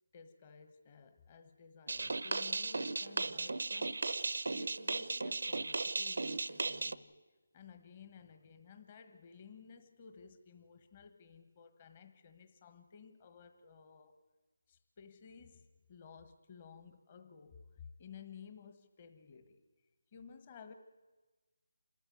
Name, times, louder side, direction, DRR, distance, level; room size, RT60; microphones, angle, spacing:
voice 1, 0.1-4.0 4.5-7.1 7.5-14.2 14.7-19.6 20.1-20.7, left 6 dB, 30° left, 8 dB, 1.4 m, -55 dB
sound 1, 1.9-7.0, right 3 dB, 75° right, 0.7 m, -36 dB
27.0 x 13.5 x 9.4 m, 1.2 s
figure-of-eight pair, 165°, 0 cm